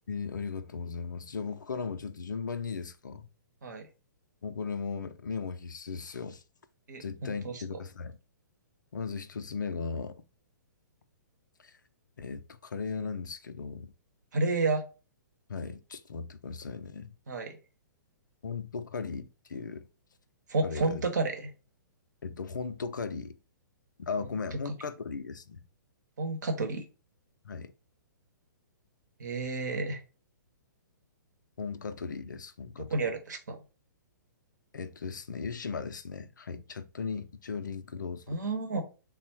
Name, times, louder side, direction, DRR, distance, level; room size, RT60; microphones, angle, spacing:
voice 1, 0.1-3.3 4.4-6.4 7.0-8.2 8.9-10.1 11.6-11.7 12.2-13.9 15.5-17.1 18.4-19.9 20.6-21.0 22.2-23.4 24.0-25.6 27.4-27.7 31.6-33.1 34.7-38.4, left 5 dB, 70° left, 0.4 m, -37 dB
voice 2, 6.9-7.6 14.3-14.8 17.3-17.6 20.5-21.5 24.2-24.4 24.6-24.7 26.2-26.8 29.2-30.0 32.8-33.6 38.3-38.8, right 3 dB, 65° right, 0.9 m, -31 dB
3.6 x 2.1 x 4.1 m
figure-of-eight pair, 120°, 11 cm